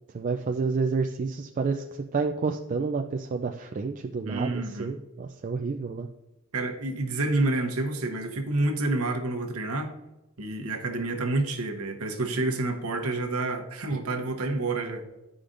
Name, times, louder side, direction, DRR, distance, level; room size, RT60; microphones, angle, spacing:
voice 1, 0.1-6.1, right 4 dB, 35° right, 4 dB, 0.3 m, -29 dB
voice 2, 4.2-5.0 6.5-9.9 10.4-15.0, right 2 dB, 80° right, 4 dB, 1.0 m, -28 dB
11.0 x 5.0 x 2.5 m, 0.96 s
head